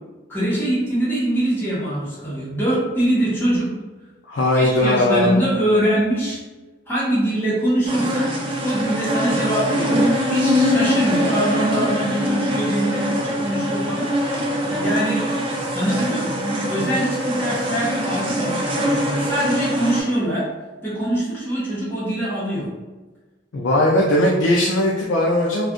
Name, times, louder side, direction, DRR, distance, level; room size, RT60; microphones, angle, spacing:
voice 1, 0.3-3.7 4.5-6.4 6.9-8.3 8.6-14.3 14.6-15.2 15.7-20.5 20.8-22.7, right 1 dB, 10° left, -9 dB, 1.1 m, -23 dB
voice 2, 4.3-5.4 23.5-25.7, left 1 dB, 70° left, -2 dB, 0.4 m, -18 dB
sound 1, 7.9-20.0, equal, 25° right, 0.4 m, -23 dB
2.4 x 2.4 x 3.6 m, 1.2 s
head